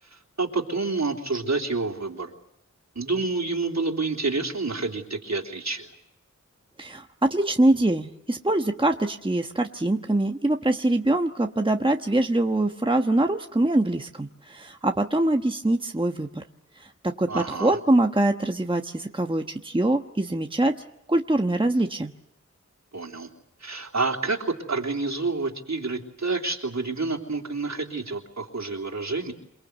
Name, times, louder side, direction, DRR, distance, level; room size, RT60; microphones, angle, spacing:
voice 1, 0.1-2.3 2.9-5.9 17.3-17.8 22.9-23.3 23.6-29.3, right 3 dB, 65° right, 2 dB, 3.3 m, -28 dB
voice 2, 6.8-16.4 17.0-20.7 21.1-22.1, right 1 dB, 15° right, 4 dB, 1.2 m, -23 dB
28.5 x 19.0 x 8.1 m, 0.83 s
wide cardioid pair, 70°, 30 cm